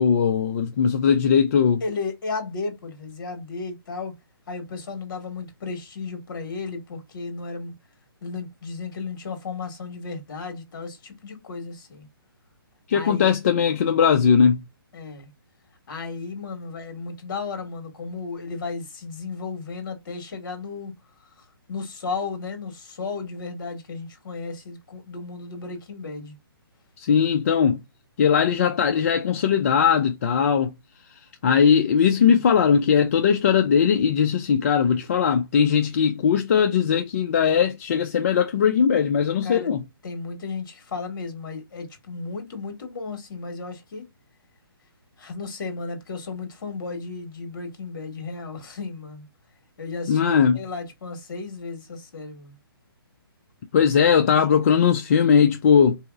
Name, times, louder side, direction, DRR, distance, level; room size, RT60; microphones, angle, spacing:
voice 1, 0.0-1.8 12.9-14.6 27.0-27.8 28.2-30.8 31.4-39.8 50.1-50.6 53.7-56.0, left 7 dB, 35° left, 0.4 m, -19 dB
voice 2, 1.8-4.1 4.5-7.7 8.2-12.1 12.9-13.3 14.9-15.3 15.9-20.9 21.7-26.3 32.1-32.4 39.4-39.7 40.0-44.1 45.2-49.3 49.8-52.5 54.4-54.5, left 4 dB, 55° left, 1.4 m, -34 dB
3.8 x 2.7 x 2.2 m
hypercardioid pair, 160°, 13 cm